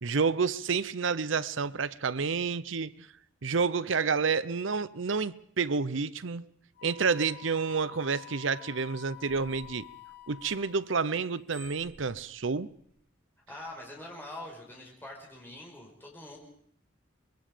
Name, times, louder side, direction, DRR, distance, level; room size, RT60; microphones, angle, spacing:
voice 1, 0.0-3.1 3.4-6.5 6.8-9.9 10.3-12.7, right 5 dB, 80° right, 0.7 m, -29 dB
Wind instrument woodwind instrument, 6.8-10.9, left 16 dB, 55° left, 1.3 m, -49 dB
Bicycle bell, 9.1-10.8 11.2-12.9 13.5-13.7, right 3 dB, 5° right, 6.2 m, -54 dB
voice 2, 13.5-16.4, left 1 dB, 10° left, 5.6 m, -44 dB
25.5 x 21.5 x 5.1 m
head